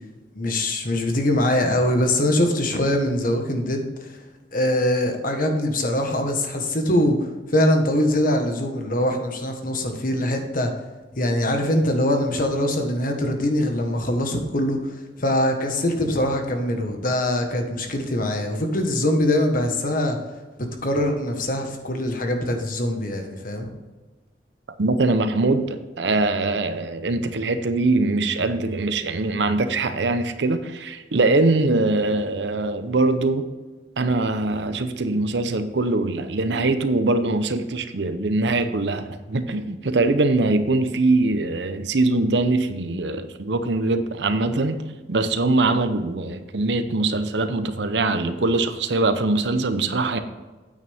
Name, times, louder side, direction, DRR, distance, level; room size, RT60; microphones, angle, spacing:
voice 1, 0.3-4.2 4.5-10.7 11.1-20.2 20.8-23.7, left 1 dB, 50° left, 4 dB, 1.4 m, -23 dB
voice 2, 24.8-33.5 34.0-44.8 45.1-50.2, right 2 dB, 75° right, 10 dB, 0.8 m, -22 dB
9.2 x 8.8 x 3.5 m, 1.2 s
head